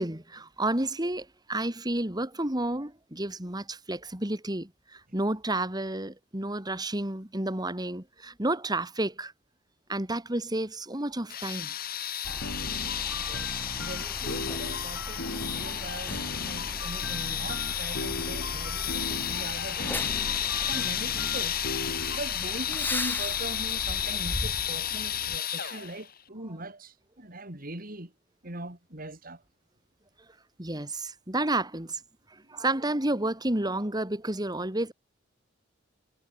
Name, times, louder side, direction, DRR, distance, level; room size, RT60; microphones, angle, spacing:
voice 1, 0.0-9.3 9.9-11.7 30.6-32.0 32.5-34.9, right 1 dB, 20° right, 3.2 m, -31 dB
sound 1, 11.3-26.1, left 10 dB, 50° left, 3.2 m, -32 dB
Truck, 12.2-25.4, left 1 dB, 10° left, 5.2 m, -39 dB
sound 2, 12.3-22.2, left 2 dB, 75° left, 4.8 m, -39 dB
voice 2, 13.2-20.0 20.4-21.6 22.1-28.1 28.4-29.4 32.6-32.7, right 1 dB, 50° right, 5.3 m, -41 dB
head